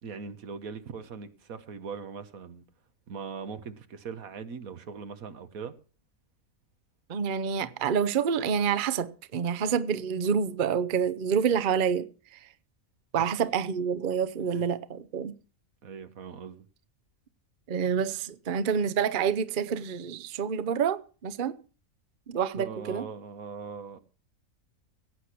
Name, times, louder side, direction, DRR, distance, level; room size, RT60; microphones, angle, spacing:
voice 1, 0.0-2.6 3.1-5.7 14.5-14.6 15.8-16.7 22.5-24.0, right 5 dB, 85° right, 1.7 m, -40 dB
voice 2, 7.1-12.4 13.1-15.3 17.7-21.6 22.3-23.0, right 7 dB, 45° right, 0.8 m, -28 dB
16.5 x 8.5 x 6.0 m
omnidirectional pair, 1.4 m